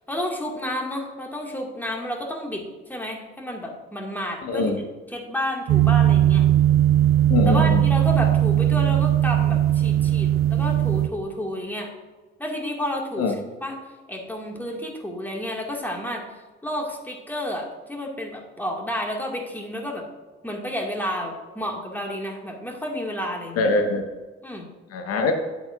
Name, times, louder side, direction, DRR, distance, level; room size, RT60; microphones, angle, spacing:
voice 1, 0.1-2.6 2.9-4.7 5.1-6.5 7.4-11.9 12.4-13.8 14.1-16.2 16.6-20.1 20.4-23.7 24.4-24.7, equal, 5° left, 0 dB, 2.1 m, -30 dB
voice 2, 4.4-4.8 7.3-7.8 13.2-13.3 23.6-24.0 24.9-25.3, left 3 dB, 55° left, 5 dB, 1.4 m, -23 dB
sound 1, 5.7-11.1, right 12 dB, 50° right, 0.6 m, -19 dB
10.0 x 7.8 x 2.6 m, 1.3 s
hypercardioid pair, 55°, 29 cm